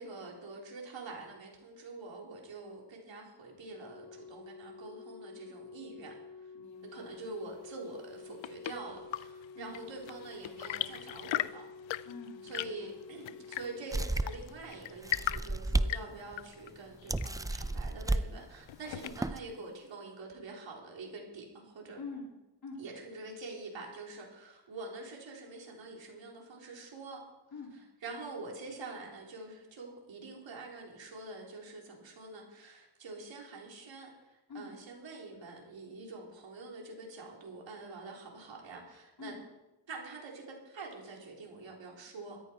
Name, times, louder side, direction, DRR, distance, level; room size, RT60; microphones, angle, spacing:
voice 1, 0.0-6.5 6.9-11.7 12.4-22.0 22.8-27.2 28.0-39.4 39.9-42.4, right 3 dB, 75° right, -1 dB, 4.1 m, -46 dB
Organ, 3.8-14.7 15.8-16.0, left 5 dB, 70° left, 1.9 m, -50 dB
voice 2, 6.5-7.2 9.5-9.8 12.0-13.0 19.0-19.2 22.0-22.3 22.6-22.8 27.5-27.8 34.5-34.7 39.2-39.4, left 3 dB, 55° left, -1 dB, 3.7 m, -46 dB
Chirp tweet / Engine / Tap, 8.0-19.5, left 14 dB, 85° left, 0.6 m, -40 dB
sound 1, 13.9-14.5 15.0-15.9 16.3-16.4 17.1-18.2 19.0-19.4, right 2 dB, 10° right, 0.5 m, -32 dB
14.5 x 13.5 x 4.7 m, 1.0 s
cardioid pair, 75°, 45 cm